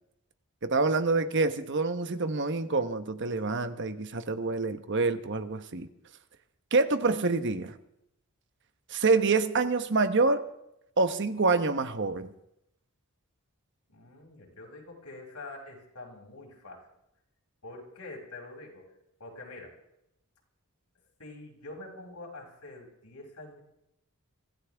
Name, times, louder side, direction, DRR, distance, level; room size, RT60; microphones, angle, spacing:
voice 1, 0.6-5.9 6.7-7.8 8.9-10.4 11.0-12.3, right 3 dB, 55° right, 10 dB, 1.1 m, -26 dB
voice 2, 13.9-16.9 17.6-18.9 19.2-19.8 21.2-23.6, left 2 dB, 85° left, -1 dB, 6.0 m, -45 dB
24.5 x 15.5 x 3.5 m, 0.82 s
head